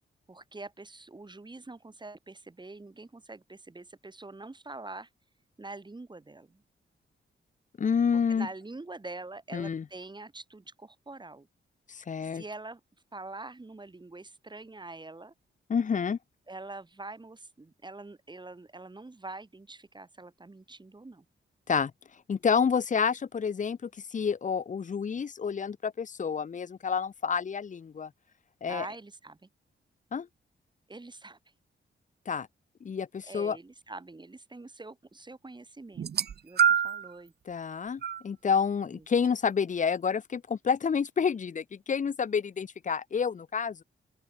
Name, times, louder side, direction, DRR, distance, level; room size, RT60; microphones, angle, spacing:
voice 1, 0.3-5.1 5.6-6.6 8.3-11.5 12.2-12.8 13.1-15.3 16.5-21.3 28.7-29.5 30.9-31.4 33.3-36.1 36.4-37.3 38.9-39.0, right 2 dB, 20° right, 5.4 m, -44 dB
voice 2, 7.8-8.5 9.5-9.8 11.9-12.4 15.7-16.2 21.7-21.9 22.3-28.1 28.6-28.9 30.1-30.3 32.3-32.5 32.8-33.6 37.5-43.8, left 6 dB, 40° left, 0.7 m, -29 dB
sound 1, 36.0-37.1 38.0-38.2 39.2-39.3, right 8 dB, 55° right, 0.8 m, -25 dB
open air
wide cardioid pair, 115°, 20 cm